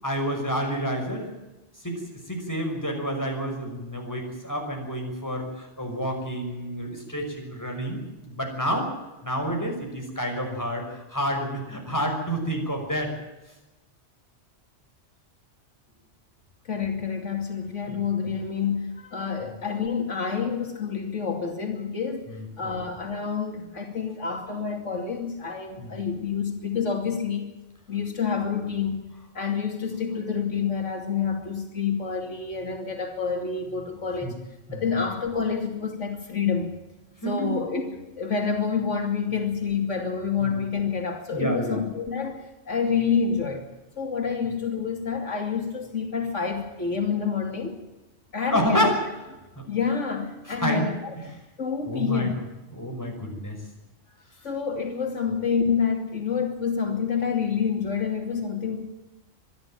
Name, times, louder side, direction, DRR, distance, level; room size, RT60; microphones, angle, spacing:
voice 1, 0.0-1.3 1.8-2.0 2.3-8.9 9.2-13.1 17.9-18.4 19.4-19.5 22.3-22.8 25.8-26.0 34.2-34.3 34.7-34.8 37.2-37.5 40.4-40.6 41.3-41.8 48.5-49.0 49.6-49.7 50.4-50.9 51.2-51.3 51.8-52.3 52.7-53.6, equal, 15° left, 1 dB, 5.7 m, -29 dB
voice 2, 16.7-22.2 22.6-27.5 27.9-29.0 29.3-34.4 34.7-36.7 37.2-43.7 44.0-47.8 48.3-48.9 49.7-50.9 51.6-52.3 54.4-58.9, left 6 dB, 90° left, 4 dB, 3.0 m, -28 dB
24.5 x 11.5 x 9.1 m, 1.0 s
omnidirectional pair, 1.2 m